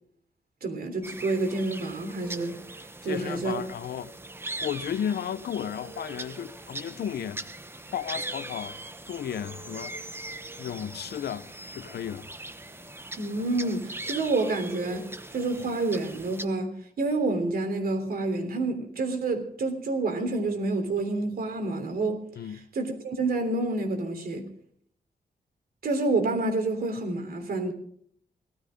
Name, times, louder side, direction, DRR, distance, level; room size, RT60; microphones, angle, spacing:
voice 1, 0.6-2.6 3.0-3.6 13.2-22.2 22.7-24.5 25.8-27.7, right 2 dB, 70° right, 3.4 m, -28 dB
sound 1, 1.0-16.5, right 2 dB, 15° right, 1.0 m, -41 dB
voice 2, 3.0-4.2 4.6-7.4 7.9-8.8 9.1-10.0 10.6-12.3 22.4-22.6, left 9 dB, 85° left, 0.8 m, -34 dB
17.5 x 13.0 x 5.2 m
wide cardioid pair, 130°, 16 cm